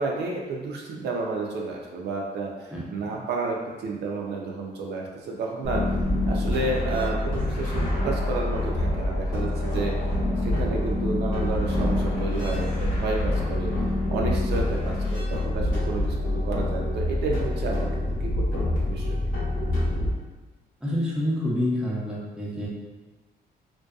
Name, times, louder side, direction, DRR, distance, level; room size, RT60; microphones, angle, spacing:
voice 1, 0.0-5.8 6.2-9.9 10.4-13.7 14.1-17.9 18.2-19.3, right 3 dB, 85° right, -1 dB, 0.4 m, -31 dB
voice 2, 2.7-3.1 20.8-22.7, left 1 dB, 5° right, -6 dB, 0.5 m, -28 dB
sound 1, 5.6-20.1, left 1 dB, 55° left, 0.8 m, -26 dB
2.6 x 2.2 x 2.3 m, 1.2 s
cardioid pair, 140°, 17 cm